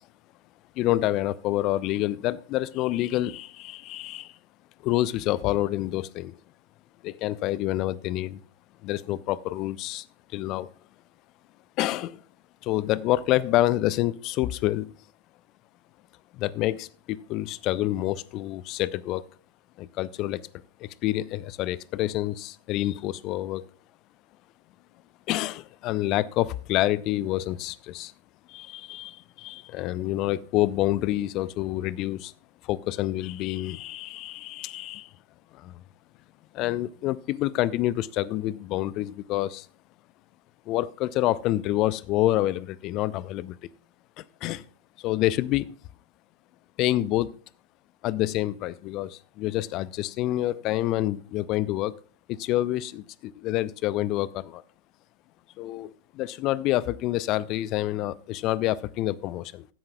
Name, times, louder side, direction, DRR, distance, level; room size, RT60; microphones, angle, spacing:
voice 1, 0.8-4.3 4.8-6.3 7.0-8.4 8.8-10.1 10.3-10.7 11.8-12.2 12.6-14.9 16.3-19.2 19.8-20.5 20.8-23.6 25.3-28.1 28.5-32.3 32.6-35.1 35.5-35.7 36.5-39.7 40.7-43.6 44.2-44.7 45.0-45.7 46.8-47.3 48.0-51.9 52.3-54.6 55.6-59.7, left 15 dB, 40° left, 0.5 m, -27 dB
15.0 x 10.5 x 2.3 m
figure-of-eight pair, 90°, 0 cm